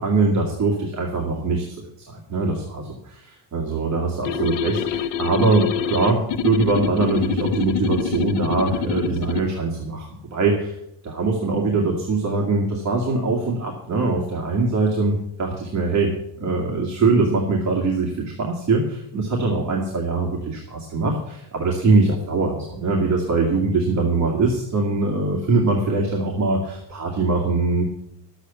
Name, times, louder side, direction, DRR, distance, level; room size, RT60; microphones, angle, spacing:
voice 1, 0.0-1.6 2.1-10.8 11.0-27.8, right 3 dB, 40° right, -1 dB, 2.1 m, -22 dB
sound 1, 4.3-9.5, left 7 dB, 80° left, 0.8 m, -26 dB
12.0 x 8.1 x 7.0 m, 0.79 s
cardioid pair, 160°, 42 cm